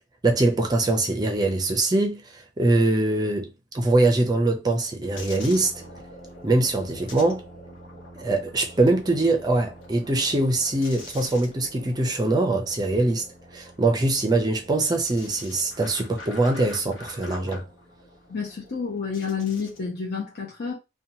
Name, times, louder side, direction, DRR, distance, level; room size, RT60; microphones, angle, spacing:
voice 1, 0.2-5.8 6.4-7.4 8.2-13.3 13.5-17.6, right 2 dB, 20° right, 0.4 m, -23 dB
sound 1, 5.1-19.9, left 1 dB, 90° left, 0.9 m, -45 dB
voice 2, 18.3-20.7, left 5 dB, 55° left, 0.6 m, -29 dB
2.8 x 2.2 x 2.6 m
head